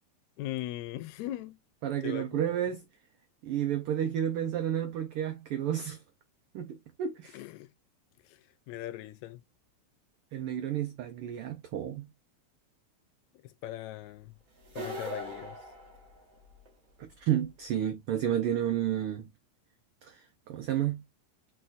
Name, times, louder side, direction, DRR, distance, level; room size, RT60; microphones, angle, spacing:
voice 1, 0.4-1.6 2.0-2.8 7.3-7.7 8.3-8.4 8.7-9.4 13.4-14.3 14.8-15.6, left 14 dB, 80° left, 1.8 m, -39 dB
voice 2, 1.8-2.8 3.4-6.0 6.5-7.4 10.3-12.1 17.0-19.2 20.0-21.0, right 10 dB, 85° right, 1.2 m, -31 dB
sound 1, 14.6-16.7, right 1 dB, 35° right, 1.4 m, -41 dB
4.4 x 4.3 x 2.5 m
omnidirectional pair, 3.3 m